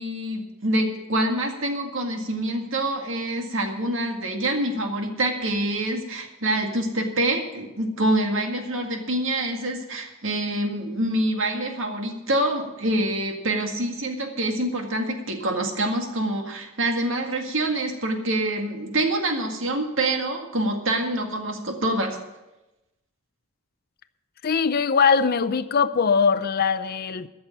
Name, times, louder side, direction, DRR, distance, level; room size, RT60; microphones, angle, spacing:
voice 1, 0.0-22.2, right 1 dB, 65° right, 3 dB, 2.0 m, -26 dB
voice 2, 24.4-27.3, left 5 dB, 45° left, 12 dB, 0.5 m, -21 dB
13.0 x 6.9 x 8.6 m, 1.0 s
head